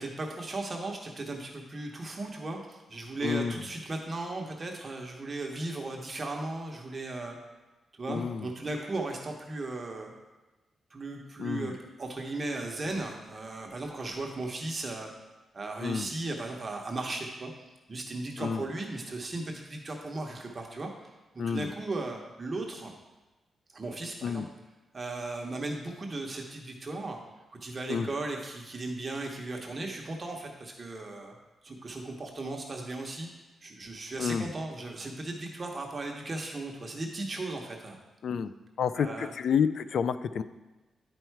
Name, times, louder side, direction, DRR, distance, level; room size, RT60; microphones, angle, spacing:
voice 1, 0.0-7.4 7.9-10.1 10.9-15.1 15.5-17.5 17.9-20.9 21.3-22.9 23.7-24.4 24.9-27.2 27.5-31.3 31.6-33.3 33.6-38.0 38.9-39.3, right 2 dB, 30° right, 1 dB, 0.8 m, -36 dB
voice 2, 3.2-3.6 8.1-8.5 11.4-11.7 15.8-16.1 18.4-18.6 21.4-21.7 24.2-24.5 27.9-28.1 34.2-34.5 38.2-38.5 38.8-40.4, left 7 dB, 60° left, 13 dB, 0.3 m, -29 dB
9.6 x 4.5 x 4.6 m, 1.1 s
wide cardioid pair, 160°, 0 cm